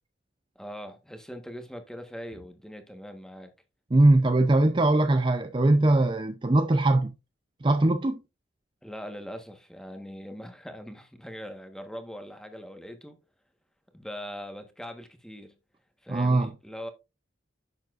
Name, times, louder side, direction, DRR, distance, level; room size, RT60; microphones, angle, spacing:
voice 1, 0.5-3.5 8.8-13.2 13.9-15.5 16.0-16.9, equal, 5° left, 1.2 m, -41 dB
voice 2, 3.9-7.1 7.6-8.2 16.1-16.5, right 2 dB, 25° right, 0.5 m, -21 dB
10.5 x 7.2 x 2.5 m
head